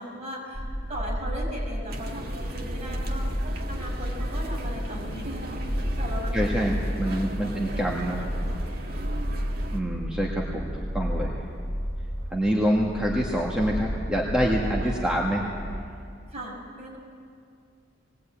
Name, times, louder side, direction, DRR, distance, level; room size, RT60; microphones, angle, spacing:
voice 1, 0.0-3.3 3.7-9.5 14.8-15.1 16.3-17.0, equal, 35° right, -2 dB, 5.6 m, -39 dB
sound 1, 0.5-15.8, equal, 15° left, 5.9 m, -31 dB
sound 2, 1.9-9.8, right 1 dB, 50° right, 1.6 m, -40 dB
voice 2, 6.3-8.2 9.7-11.4 12.3-15.5, equal, 5° right, -3 dB, 1.7 m, -26 dB
21.0 x 19.0 x 8.8 m, 2.4 s
head